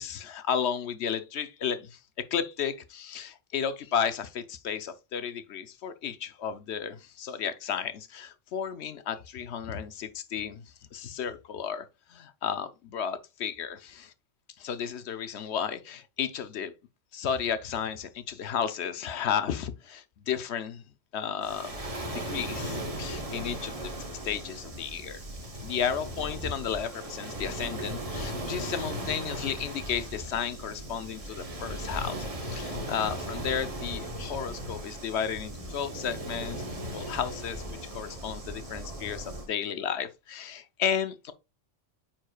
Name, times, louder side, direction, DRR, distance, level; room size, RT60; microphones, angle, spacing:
voice 1, 0.0-2.0 2.3-10.6 10.9-14.1 14.6-16.7 17.1-20.8 21.1-23.9 24.2-25.2 25.6-41.3, left 8 dB, 70° left, 0.9 m, -33 dB
Waves surf, 21.4-39.5, right 1 dB, 30° right, 1.1 m, -37 dB
9.3 x 4.4 x 2.3 m
omnidirectional pair, 1.2 m